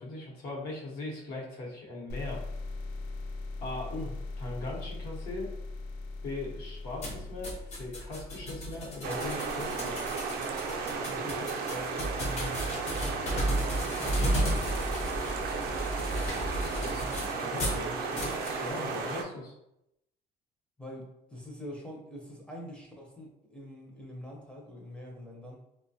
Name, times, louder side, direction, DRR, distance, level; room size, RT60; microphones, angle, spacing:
voice 1, 0.0-2.4 3.6-3.9 4.4-5.5 6.2-10.1 16.8-19.5, left 2 dB, 75° left, -3 dB, 0.9 m, -39 dB
sound 1, 2.1-9.6, left 3 dB, 90° left, 0.4 m, -40 dB
sound 2, 7.0-17.8 18.2-18.6, equal, 45° left, 0.7 m, -33 dB
sound 3, 9.0-19.2, right 4 dB, 70° right, 0.4 m, -34 dB
voice 2, 11.0-12.7 13.3-14.7 20.8-25.6, equal, 5° left, -1 dB, 0.5 m, -44 dB
2.7 x 2.1 x 2.6 m, 0.83 s
cardioid pair, 150°, 16 cm